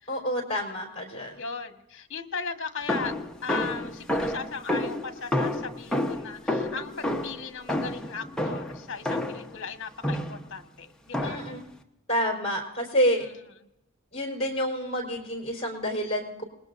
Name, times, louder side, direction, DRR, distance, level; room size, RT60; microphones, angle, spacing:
voice 1, 0.1-1.4 11.2-11.6 12.1-13.3 14.1-16.4, equal, 30° left, 1 dB, 3.9 m, -28 dB
voice 2, 1.4-3.1 3.4-11.4 13.1-13.3, left 5 dB, 55° left, 6 dB, 1.4 m, -37 dB
sound 1, 2.9-9.5 10.0-10.5 11.1-11.6, left 1 dB, 5° left, 1.0 m, -30 dB
27.5 x 20.5 x 2.6 m, 0.88 s
head